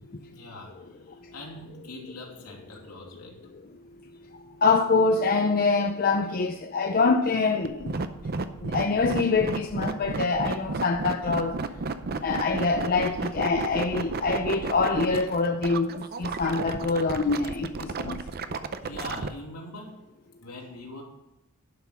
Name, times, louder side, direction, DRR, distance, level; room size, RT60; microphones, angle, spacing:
voice 1, 0.0-3.4 18.8-20.0 20.4-21.0, left 2 dB, 75° left, 2.9 m, -43 dB
voice 2, 4.6-8.0 8.6-11.6 12.2-18.2, left 4 dB, 40° left, 0.6 m, -25 dB
sound 1, 7.6-19.3, right 4 dB, 45° right, 0.6 m, -32 dB
11.0 x 6.0 x 5.8 m
head